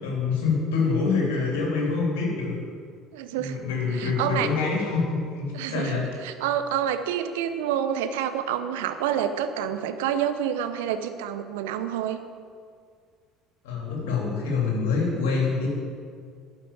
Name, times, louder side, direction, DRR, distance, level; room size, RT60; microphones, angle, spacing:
voice 1, 0.0-2.5 3.3-6.1 13.6-15.7, left 4 dB, 65° left, -1 dB, 3.1 m, -26 dB
voice 2, 3.1-3.6 3.9-4.5 5.5-12.2, right 9 dB, 70° right, 9 dB, 0.7 m, -28 dB
12.0 x 6.1 x 8.7 m, 2.1 s
figure-of-eight pair, 60°, 0 cm